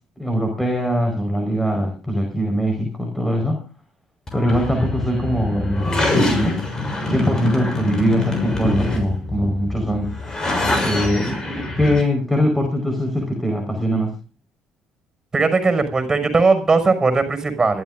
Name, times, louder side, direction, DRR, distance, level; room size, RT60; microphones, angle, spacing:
voice 1, 0.2-3.6 4.3-6.6 7.1-10.1 10.8-11.5 11.8-14.1, equal, 10° left, 2 dB, 4.6 m, -22 dB
sound 1, 4.3-12.0, left 2 dB, 25° left, 6.7 m, -24 dB
voice 2, 15.3-17.8, right 4 dB, 25° right, 7 dB, 5.8 m, -18 dB
26.0 x 12.5 x 2.6 m, 0.30 s
hypercardioid pair, 65°, 2 cm